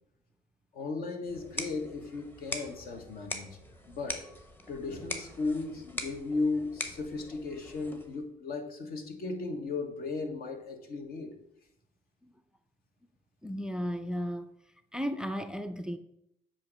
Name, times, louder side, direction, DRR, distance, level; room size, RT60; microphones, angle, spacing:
voice 1, 0.7-3.6 3.9-4.2 4.7-11.3, left 3 dB, 60° left, 1.4 m, -35 dB
sound 1, 1.3-8.2, left 1 dB, 10° left, 0.9 m, -42 dB
voice 2, 13.4-14.5 14.9-16.0, equal, 5° right, 0.4 m, -34 dB
8.3 x 2.9 x 6.1 m
cardioid pair, 110°, 17 cm